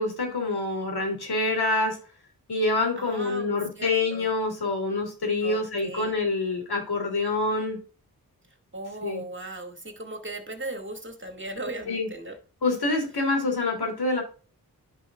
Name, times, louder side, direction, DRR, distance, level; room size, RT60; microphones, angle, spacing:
voice 1, 0.0-2.0 2.5-7.8 9.0-9.2 11.9-12.1 12.6-14.2, left 3 dB, 70° left, 2 dB, 2.9 m, -26 dB
voice 2, 3.0-4.3 5.4-6.1 8.7-12.4, right 2 dB, 30° right, 3 dB, 2.1 m, -37 dB
11.5 x 5.4 x 2.4 m, 0.37 s
cardioid pair, 50°, 40 cm